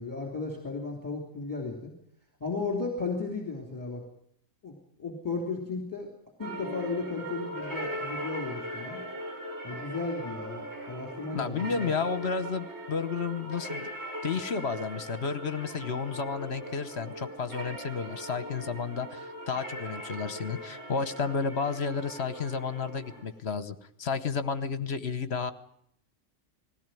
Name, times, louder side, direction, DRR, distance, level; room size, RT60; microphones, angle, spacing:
voice 1, 0.0-1.9 2.4-4.0 4.6-6.1 6.4-9.0 9.6-11.9, left 3 dB, 15° left, 1 dB, 3.2 m, -35 dB
sound 1, 6.4-23.2, right 1 dB, 50° right, 8.3 m, -40 dB
voice 2, 11.3-13.9 14.2-25.5, left 5 dB, 50° left, 11 dB, 1.2 m, -32 dB
20.0 x 17.0 x 9.1 m, 0.72 s
omnidirectional pair, 1.4 m